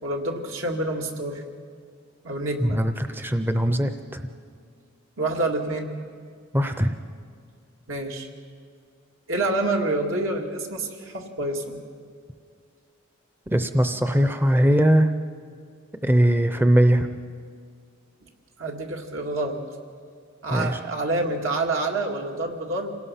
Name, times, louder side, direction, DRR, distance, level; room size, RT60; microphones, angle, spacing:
voice 1, 0.0-1.4 2.2-2.8 5.2-5.9 7.9-8.3 9.3-11.8 18.6-19.6 20.4-23.0, right 2 dB, 80° right, 1 dB, 2.3 m, -27 dB
voice 2, 2.6-3.9 6.5-6.9 13.5-15.1 16.0-17.1 20.5-20.8, equal, 10° right, 8 dB, 0.6 m, -20 dB
27.0 x 18.0 x 5.7 m, 2.1 s
head